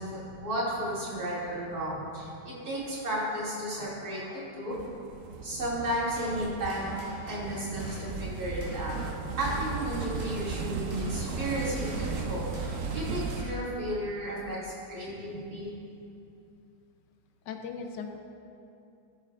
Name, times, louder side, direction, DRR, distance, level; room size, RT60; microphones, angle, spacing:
voice 1, 0.0-4.7 5.4-9.0 9.4-15.7, equal, 60° right, -9 dB, 2.9 m, -33 dB
sound 1, 4.7-13.4, right 5 dB, 75° right, 0.7 m, -36 dB
sound 2, 6.0-13.5, left 1 dB, 15° left, 1.9 m, -48 dB
voice 2, 17.5-18.2, left 5 dB, 80° left, 5 dB, 1.2 m, -38 dB
15.0 x 6.8 x 2.4 m, 2.6 s
omnidirectional pair, 1.9 m